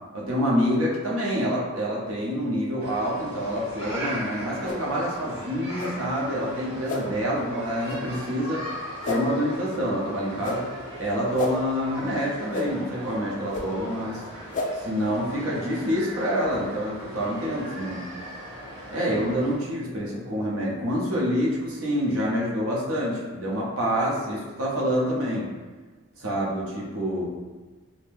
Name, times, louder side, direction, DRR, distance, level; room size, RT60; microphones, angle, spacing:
voice 1, 0.1-8.6 9.1-10.7 11.0-14.2 14.8-18.0 18.9-25.5 26.2-27.3, equal, 80° right, -4 dB, 0.7 m, -27 dB
sound 1, 2.8-19.5, right 1 dB, 50° right, 1.0 m, -39 dB
sound 2, 4.6-4.8 5.8-5.9 6.9-7.0 7.9-8.0 9.0-9.2 10.4-10.6 11.4-11.5 12.5-12.7 13.5-13.6 14.5-14.7, left 4 dB, 35° left, 0.3 m, -30 dB
2.6 x 2.1 x 3.4 m, 1.3 s
head